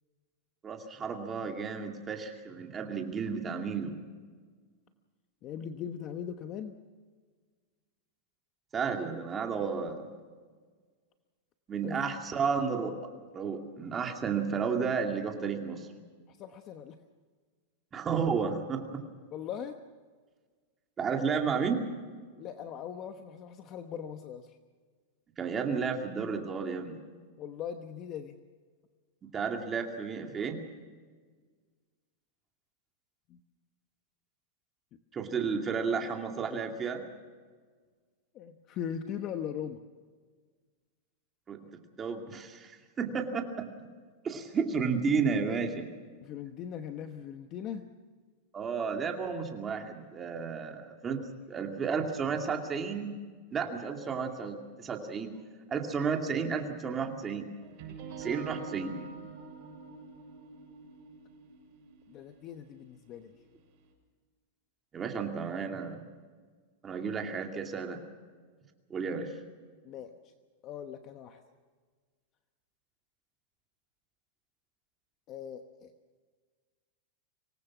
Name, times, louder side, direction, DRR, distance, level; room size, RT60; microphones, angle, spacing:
voice 1, 0.6-3.9 8.7-10.1 11.7-13.0 13.3-15.9 17.9-19.0 21.0-21.8 25.4-27.0 29.2-30.6 35.1-37.0 41.5-41.6 42.0-43.6 44.2-45.9 48.5-51.2 51.5-53.2 53.5-55.3 55.7-57.5 58.2-58.9 64.9-66.0 66.8-68.0 68.9-69.3, right 5 dB, 20° right, 3 dB, 2.4 m, -32 dB
voice 2, 5.4-6.7 11.8-12.0 16.3-17.0 19.3-19.8 22.4-24.6 27.4-28.4 33.3-33.4 38.3-39.8 46.2-47.9 62.1-63.3 69.8-70.3 70.6-71.4 75.3-75.9, left 8 dB, 30° left, 7 dB, 1.0 m, -40 dB
sound 1, 57.6-63.5, right 5 dB, 45° right, 7.1 m, -46 dB
25.5 x 19.0 x 6.1 m, 1.5 s
supercardioid pair, 160°, 0 cm